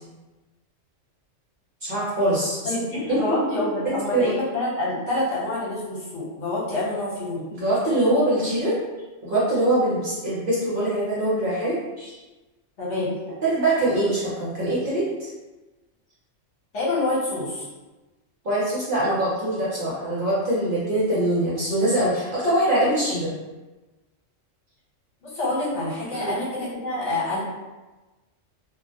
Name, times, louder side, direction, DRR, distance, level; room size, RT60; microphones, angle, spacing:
voice 1, 1.8-2.7 3.1-4.4 7.5-8.8 9.2-12.2 13.4-15.3 18.4-23.3 26.1-26.3, right 1 dB, 50° right, -8 dB, 0.7 m, -23 dB
voice 2, 2.6-7.5 12.8-13.2 16.7-17.7 25.2-27.4, left 2 dB, 65° left, -8 dB, 1.2 m, -27 dB
2.4 x 2.0 x 2.7 m, 1.1 s
omnidirectional pair, 1.3 m